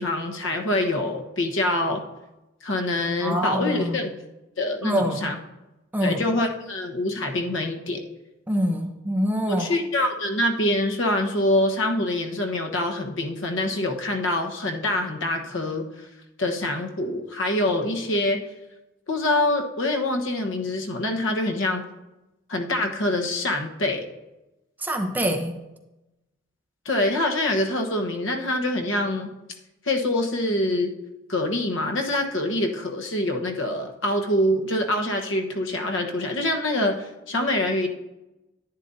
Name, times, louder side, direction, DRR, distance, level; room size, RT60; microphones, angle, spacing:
voice 1, 0.0-2.0 2.6-4.1 4.6-5.4 6.0-8.0 9.5-15.9 16.4-18.4 19.1-21.8 22.5-24.1 26.8-29.3 29.8-30.9 31.3-37.9, left 1 dB, 80° left, 3 dB, 1.2 m, -25 dB
voice 2, 3.2-4.0 4.8-5.3 5.9-6.2 8.5-9.7 24.8-25.5, equal, 10° right, 3 dB, 0.8 m, -25 dB
10.5 x 10.0 x 2.7 m, 0.98 s
head